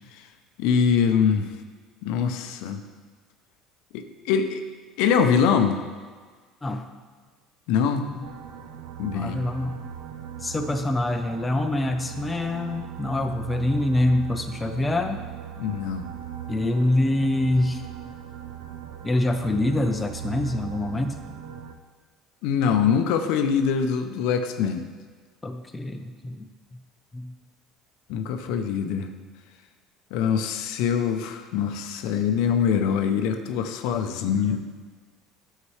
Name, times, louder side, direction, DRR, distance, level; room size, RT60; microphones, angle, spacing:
voice 1, 0.6-1.5 2.0-2.8 3.9-4.6 5.0-5.8 7.7-8.3 9.0-9.4 15.6-16.1 22.4-24.9 28.1-29.1 30.1-34.6, left 7 dB, 75° left, 7 dB, 0.6 m, -23 dB
sound 1, 8.2-21.7, right 10 dB, 85° right, 0.5 m, -39 dB
voice 2, 9.1-9.8 10.4-15.2 16.5-17.8 19.0-21.3 25.4-26.5 27.1-27.3 28.5-28.6, left 1 dB, 15° left, 5 dB, 0.6 m, -25 dB
9.7 x 6.6 x 3.2 m, 1.5 s
supercardioid pair, 115°, 0 cm